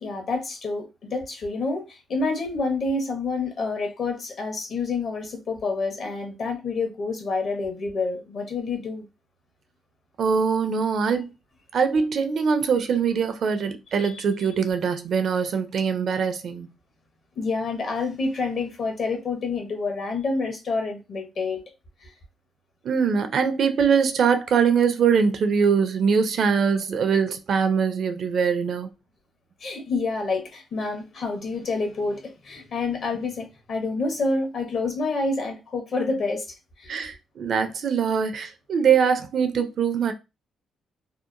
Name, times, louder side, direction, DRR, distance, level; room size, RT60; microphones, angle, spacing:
voice 1, 0.0-9.1 14.0-14.1 17.4-21.6 22.0-22.1 29.6-36.4 36.8-36.9, left 3 dB, 55° left, 0.9 m, -28 dB
voice 2, 10.2-11.3 11.7-16.7 22.8-28.9 36.9-40.1, right 6 dB, 60° right, 0.5 m, -22 dB
2.8 x 2.1 x 2.5 m
cardioid pair, 90°, 0 cm